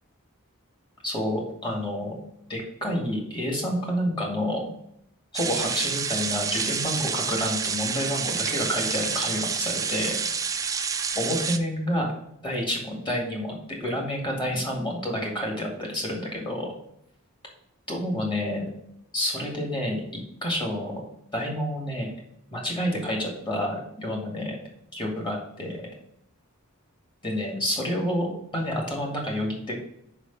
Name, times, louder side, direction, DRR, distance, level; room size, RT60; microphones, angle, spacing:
voice 1, 1.0-2.1 2.5-4.6 5.3-10.2 11.1-12.1 12.4-13.5 13.8-16.7 17.9-18.6 19.1-20.0 20.4-20.9 21.3-22.2 22.5-24.6 24.9-25.8 27.2-29.8, equal, 20° left, 0 dB, 2.0 m, -29 dB
sound 1, 5.3-11.6, right 6 dB, 15° right, 0.3 m, -28 dB
5.0 x 4.9 x 5.4 m, 0.76 s
head